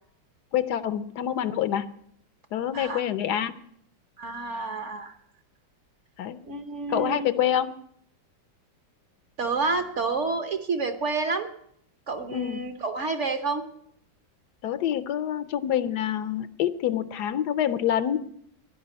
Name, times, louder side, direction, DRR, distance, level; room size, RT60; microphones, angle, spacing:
voice 1, 0.5-1.9 2.5-3.5 6.2-6.4 6.9-7.8 12.3-12.6 14.6-18.3, left 10 dB, 70° left, 14 dB, 1.2 m, -26 dB
voice 2, 4.2-5.2 6.4-7.3 9.4-11.5 12.1-13.6, right 3 dB, 50° right, 8 dB, 1.2 m, -29 dB
10.5 x 10.5 x 9.5 m, 0.69 s
omnidirectional pair, 1.9 m